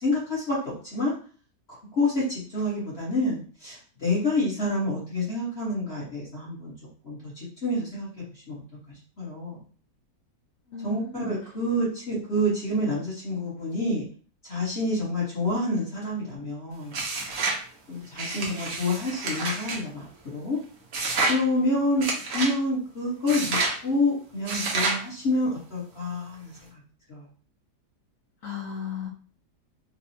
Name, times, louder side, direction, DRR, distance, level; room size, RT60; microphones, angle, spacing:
voice 1, 0.0-1.1 2.0-6.7 7.0-8.5 9.2-9.6 10.8-14.1 14.4-16.9 17.9-20.6 21.3-26.6 27.1-27.2, left 1 dB, 40° left, -8 dB, 1.4 m, -28 dB
voice 2, 10.7-11.3 28.4-29.1, left 7 dB, 60° left, 0 dB, 1.0 m, -35 dB
sound 1, 16.9-17.6 18.2-19.8 20.9-21.4 22.0-22.5 23.3-23.8 24.5-25.0, right 3 dB, 60° right, 1.1 m, -28 dB
4.3 x 2.3 x 2.7 m, 0.40 s
omnidirectional pair, 1.8 m